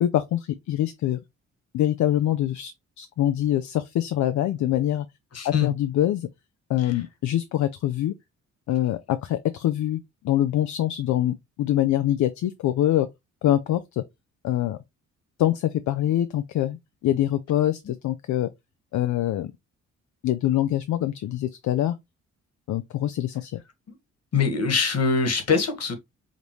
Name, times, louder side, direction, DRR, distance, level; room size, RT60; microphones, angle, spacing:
voice 1, 0.0-1.2 1.7-2.7 3.0-5.1 5.4-6.3 6.7-8.1 8.7-10.0 10.2-13.1 13.4-14.0 14.4-14.8 15.4-18.5 18.9-19.5 20.2-21.9 22.7-23.6, left 12 dB, 70° left, 0.5 m, -24 dB
voice 2, 5.3-5.7 6.8-6.9 24.3-25.9, left 5 dB, 55° left, 1.6 m, -23 dB
5.2 x 2.6 x 3.0 m
cardioid pair, 75°, 30 cm